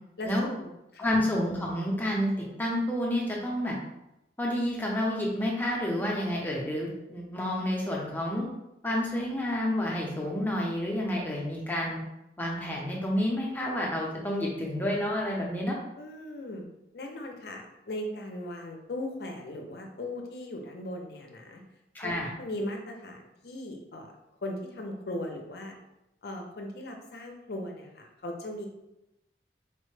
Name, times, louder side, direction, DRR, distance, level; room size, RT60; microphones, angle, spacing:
voice 1, 0.2-1.1 16.0-21.6 22.0-22.1 22.4-24.1 24.4-25.7 26.2-28.7, left 1 dB, 60° left, 2 dB, 0.5 m, -38 dB
voice 2, 1.0-2.3 2.6-3.7 4.4-8.5 8.8-12.0 12.4-15.8 21.9-22.3, left 1 dB, 10° left, -3 dB, 0.6 m, -29 dB
4.2 x 2.1 x 3.1 m, 0.90 s
head